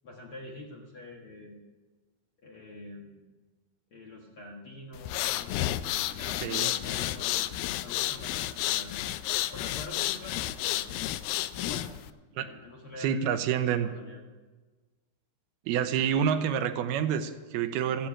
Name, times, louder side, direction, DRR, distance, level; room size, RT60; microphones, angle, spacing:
voice 1, 0.0-1.6 2.4-3.2 3.9-5.5 5.8-7.5 7.8-9.2 9.5-11.0 11.5-11.9 12.4-14.2, left 1 dB, 55° left, -1 dB, 1.5 m, -46 dB
sound 1, 5.0-12.1, left 14 dB, 80° left, 2.1 m, -31 dB
voice 2, 13.0-13.9 15.7-18.1, right 8 dB, 85° right, 9 dB, 2.8 m, -28 dB
14.0 x 10.0 x 8.7 m, 1.3 s
omnidirectional pair, 4.5 m